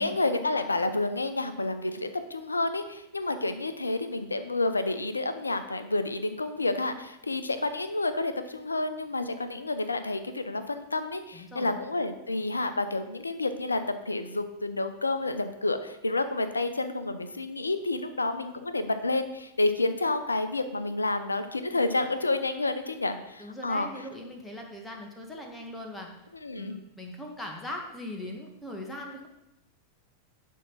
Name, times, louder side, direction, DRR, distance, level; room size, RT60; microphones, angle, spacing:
voice 1, 0.0-23.9 26.4-26.7, left 2 dB, 80° left, 10 dB, 0.7 m, -29 dB
voice 2, 11.3-11.8 23.4-26.1 26.6-29.3, left 1 dB, 10° left, 1 dB, 1.8 m, -40 dB
11.0 x 3.7 x 6.1 m, 0.90 s
figure-of-eight pair, 90°, 0 cm